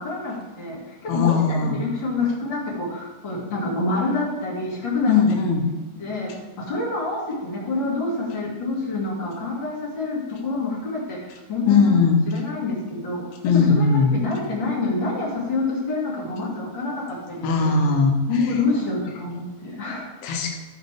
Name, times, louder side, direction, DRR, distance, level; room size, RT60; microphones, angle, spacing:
voice 1, 0.0-5.5 6.0-12.0 12.3-13.3 13.5-17.7 18.3-20.1, left 3 dB, 30° left, -5 dB, 2.4 m, -27 dB
voice 2, 1.1-1.9 5.1-5.7 11.7-12.3 13.4-14.1 17.4-18.1 20.2-20.6, left 5 dB, 90° left, 3 dB, 3.6 m, -19 dB
14.5 x 6.4 x 3.5 m, 1.1 s
omnidirectional pair, 5.2 m